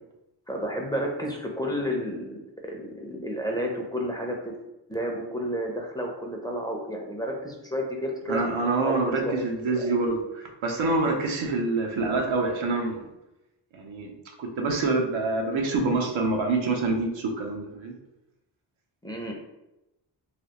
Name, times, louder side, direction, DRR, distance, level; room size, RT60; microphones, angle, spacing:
voice 1, 0.5-4.5 4.9-9.8 19.0-19.3, equal, 10° left, 0 dB, 0.4 m, -31 dB
voice 2, 8.3-13.0 13.7-14.1 14.4-17.9, right 3 dB, 85° right, 2 dB, 0.7 m, -26 dB
3.3 x 2.3 x 2.8 m, 0.93 s
cardioid pair, 85°, 46 cm